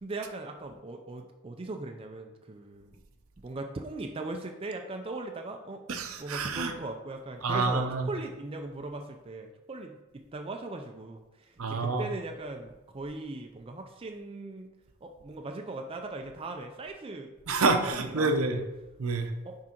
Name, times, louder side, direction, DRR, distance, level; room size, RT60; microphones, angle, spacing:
voice 1, 0.0-2.9 3.4-5.8 6.2-14.7 15.0-17.3 18.0-18.6 19.4-19.6, right 2 dB, 25° right, 4 dB, 0.4 m, -39 dB
voice 2, 5.9-6.7 7.4-8.1 11.6-12.1 17.5-18.6 19.0-19.3, right 3 dB, 75° right, 6 dB, 0.8 m, -28 dB
6.0 x 4.8 x 4.4 m, 1.1 s
head